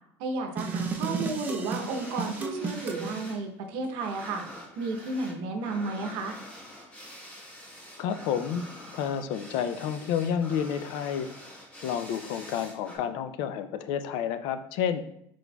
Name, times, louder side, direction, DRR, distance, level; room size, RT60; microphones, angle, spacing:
voice 1, 0.2-4.4 4.8-6.4, right 3 dB, 70° right, 4 dB, 0.8 m, -33 dB
sound 1, 0.6-3.2, right 4 dB, 20° right, 0.5 m, -33 dB
sound 2, 1.5-3.4 3.7-13.0, left 1 dB, 15° left, 1.3 m, -46 dB
voice 2, 8.0-8.6 8.9-11.3 11.8-15.0, left 8 dB, 70° left, 10 dB, 0.4 m, -30 dB
4.6 x 4.1 x 2.3 m, 0.74 s
cardioid pair, 135°, 8 cm